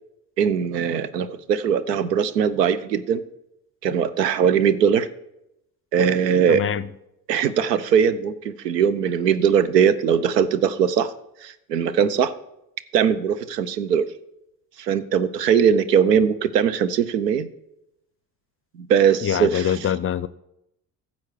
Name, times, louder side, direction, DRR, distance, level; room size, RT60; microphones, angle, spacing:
voice 1, 0.4-3.2 3.8-5.1 5.9-6.6 7.3-11.1 11.4-12.3 12.9-14.1 14.8-17.5 18.8-19.9, right 7 dB, 90° right, 0.6 m, -20 dB
voice 2, 6.5-6.9 19.2-20.3, left 9 dB, 30° left, 0.5 m, -24 dB
15.0 x 7.2 x 4.7 m
hypercardioid pair, 45°, 47 cm